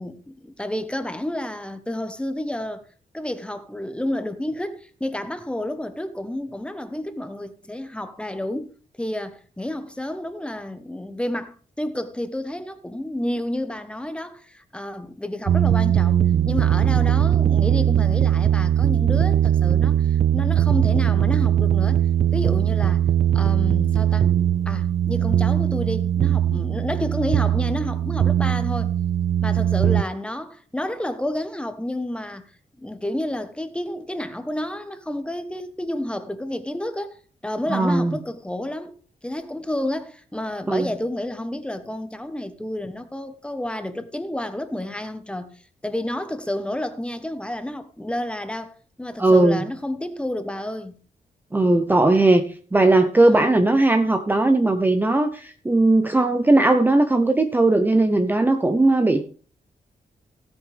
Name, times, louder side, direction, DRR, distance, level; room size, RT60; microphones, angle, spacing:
voice 1, 0.0-2.8 3.1-8.7 9.0-22.1 22.3-23.1 23.3-24.3 24.7-28.9 29.4-32.5 32.8-37.2 37.4-38.9 39.2-51.0 53.2-53.6, left 1 dB, 5° left, 1.0 m, -30 dB
sound 1, 15.5-30.0, right 10 dB, 50° right, 0.4 m, -20 dB
voice 2, 37.7-38.2 40.7-40.9 49.2-49.6 51.5-52.4 52.7-59.2, right 2 dB, 15° right, 0.7 m, -18 dB
16.0 x 8.8 x 3.4 m
wide cardioid pair, 155°, 15 cm